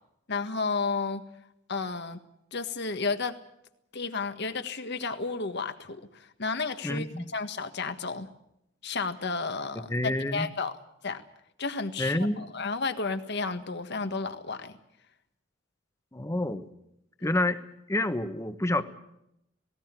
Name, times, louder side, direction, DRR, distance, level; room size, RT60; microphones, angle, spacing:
voice 1, 0.3-1.2 1.7-2.2 2.5-3.4 3.9-8.3 8.8-10.7 11.0-11.2 11.6-14.7, left 4 dB, 60° left, 9 dB, 1.6 m, -32 dB
voice 2, 6.8-7.2 9.9-10.5 12.0-12.5 16.1-16.7 17.2-17.6 17.9-18.8, left 1 dB, 15° left, 11 dB, 1.1 m, -28 dB
18.0 x 18.0 x 9.1 m, 0.81 s
head